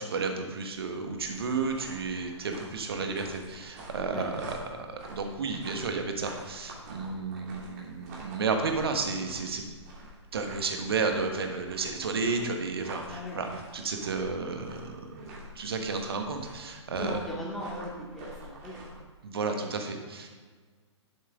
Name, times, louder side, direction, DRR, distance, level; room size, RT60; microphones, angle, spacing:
voice 1, 0.0-9.6 10.3-17.2 19.2-20.3, right 4 dB, 55° right, 4 dB, 1.4 m, -32 dB
sound 1, 1.0-19.0, right 1 dB, 35° right, 2.6 m, -48 dB
voice 2, 13.1-13.4 17.0-18.8, left 1 dB, ahead, -6 dB, 2.1 m, -37 dB
11.0 x 7.9 x 3.6 m, 1.5 s
figure-of-eight pair, 125°, 15 cm